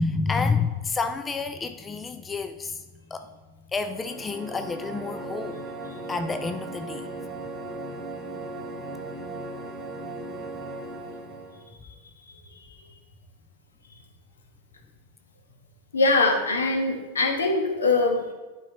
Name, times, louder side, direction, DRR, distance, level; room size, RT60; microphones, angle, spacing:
voice 1, 0.0-2.8 3.1-3.3 3.7-5.6 6.1-7.1, left 4 dB, 15° left, 9 dB, 0.4 m, -29 dB
sound 1, 3.9-11.7, right 2 dB, 20° right, 1.3 m, -37 dB
voice 2, 15.9-18.3, left 3 dB, 70° left, 4 dB, 1.2 m, -22 dB
11.0 x 5.1 x 2.9 m, 1.2 s
figure-of-eight pair, 90°, 0 cm